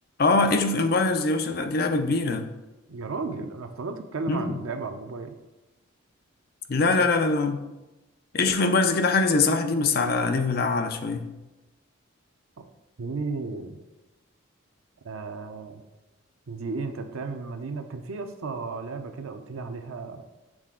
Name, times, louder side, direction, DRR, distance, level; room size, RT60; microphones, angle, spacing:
voice 1, 0.2-2.5 4.3-4.6 6.7-7.6 8.3-11.3, left 3 dB, 45° left, 6 dB, 0.5 m, -23 dB
voice 2, 2.9-5.3 13.0-13.8 15.0-15.8 16.5-20.2, right 4 dB, 90° right, 7 dB, 0.6 m, -34 dB
6.2 x 4.1 x 3.7 m, 1.0 s
head